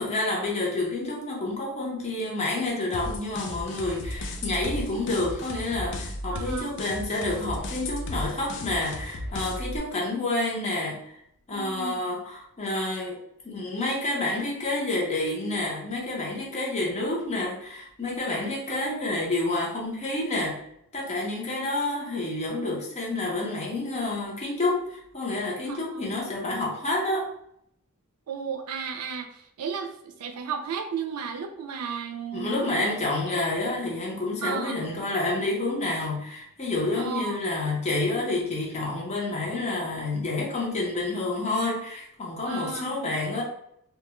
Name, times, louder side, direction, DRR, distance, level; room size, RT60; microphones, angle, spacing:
voice 1, 0.0-11.2 11.5-13.2 13.4-20.7 20.9-27.3 32.3-43.4, left 2 dB, 30° left, -2 dB, 0.7 m, -29 dB
sound 1, 2.9-9.8, left 1 dB, 55° left, 0.4 m, -35 dB
voice 2, 6.3-6.7 11.5-12.0 25.7-26.1 28.3-32.9 34.4-34.8 37.0-37.4 42.5-43.0, right 6 dB, 80° right, 5 dB, 0.4 m, -34 dB
2.3 x 2.1 x 3.0 m, 0.74 s
head